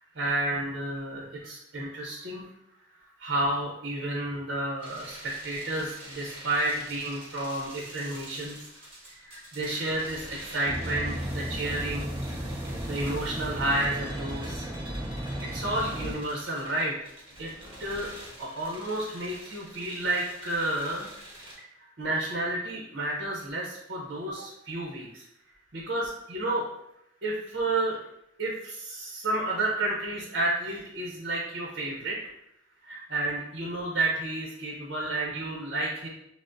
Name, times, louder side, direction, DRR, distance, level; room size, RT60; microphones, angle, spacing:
voice 1, 0.2-2.4 3.2-8.5 9.2-12.1 12.9-14.7 15.5-16.9 17.4-17.5 17.8-18.1 18.4-21.1 22.0-25.2 25.7-26.6 27.2-28.0 28.4-32.2 32.9-36.1, right 1 dB, 60° right, -3 dB, 0.7 m, -31 dB
sound 1, 4.8-21.6, right 1 dB, 30° right, 1.3 m, -46 dB
sound 2, 10.7-16.1, equal, 10° right, 0.4 m, -34 dB
5.9 x 2.1 x 2.5 m, 0.80 s
head